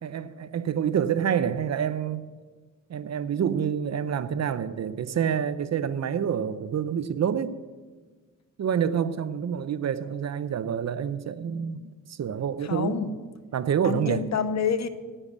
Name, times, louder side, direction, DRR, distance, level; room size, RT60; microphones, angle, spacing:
voice 1, 0.0-2.2 2.9-7.6 8.6-13.0 13.5-14.2, right 8 dB, 55° right, 0.6 m, -27 dB
voice 2, 12.6-13.1 13.8-14.9, left 6 dB, 60° left, 0.8 m, -27 dB
10.0 x 8.7 x 8.0 m
wide cardioid pair, 175°, 31 cm